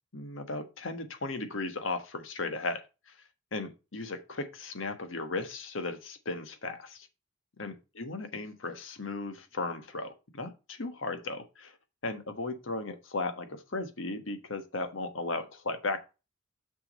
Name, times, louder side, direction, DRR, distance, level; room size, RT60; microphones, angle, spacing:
voice 1, 0.1-2.8 3.5-7.1 7.6-11.8 12.0-16.0, left 3 dB, 85° left, 1.3 m, -36 dB
6.2 x 6.1 x 4.0 m
head